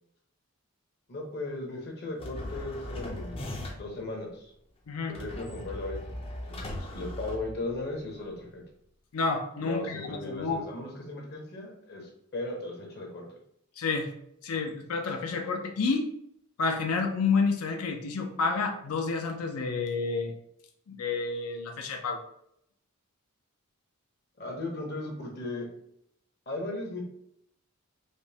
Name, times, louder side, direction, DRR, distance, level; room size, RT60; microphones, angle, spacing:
voice 1, 1.1-3.4 3.8-4.5 5.1-6.2 6.5-8.6 9.6-13.3 24.4-25.7 26.5-27.0, left 2 dB, 45° left, 0 dB, 0.8 m, -37 dB
sound 1, 2.2-4.0 5.1-8.0, left 1 dB, 25° left, 0.4 m, -38 dB
voice 2, 9.1-10.6 13.8-14.1 14.4-16.1 16.6-20.3 20.9-22.2, left 4 dB, 85° left, 4 dB, 0.5 m, -29 dB
5.0 x 2.1 x 2.7 m, 0.73 s
head